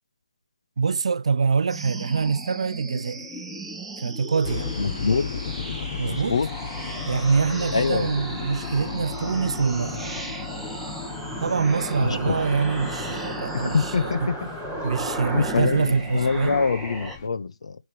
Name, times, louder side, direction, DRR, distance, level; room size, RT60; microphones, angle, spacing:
voice 1, 0.8-3.3 4.0-4.7 6.0-6.4 7.1-10.1 11.4-14.4 14.8-16.6, right 5 dB, 65° right, 0.5 m, -25 dB
sound 1, 1.7-17.2, right 2 dB, ahead, 0.9 m, -35 dB
sound 2, 4.4-17.3, left 7 dB, 30° left, 0.8 m, -36 dB
voice 2, 4.8-5.2 6.1-6.5 7.7-8.1 12.0-12.3 13.5-14.3 15.3-17.8, left 5 dB, 65° left, 0.7 m, -24 dB
7.2 x 3.4 x 6.0 m
hypercardioid pair, 165°, 3 cm